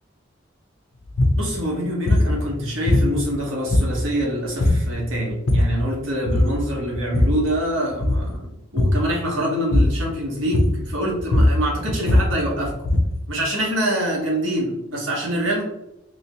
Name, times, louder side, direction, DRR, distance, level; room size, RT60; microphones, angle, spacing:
sound 1, 1.1-1.4 2.1-2.4 2.9-3.4 3.7-4.2 4.6-4.9 5.3-5.8 6.3-6.6 6.9-7.5 7.9-8.3 8.8-9.1 9.7-10.1 10.5-10.9 11.2-13.2, left 1 dB, 90° left, 0.5 m, -19 dB
voice 1, 1.4-12.8 13.3-15.6, equal, 90° right, -2 dB, 1.2 m, -25 dB
3.1 x 2.8 x 2.8 m, 0.88 s
head